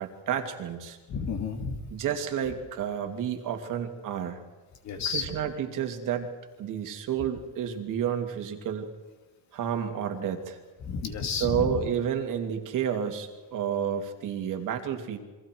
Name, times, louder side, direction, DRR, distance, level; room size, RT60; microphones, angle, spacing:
voice 1, 0.0-1.0 1.9-4.4 5.1-6.3 6.6-8.9 9.5-10.6 11.4-15.2, right 8 dB, 50° right, 5 dB, 2.8 m, -30 dB
voice 2, 1.1-1.8 4.8-5.3 10.8-11.8, left 5 dB, 45° left, 6 dB, 2.4 m, -31 dB
29.0 x 23.5 x 4.7 m, 1.3 s
cardioid pair, 170°, 39 cm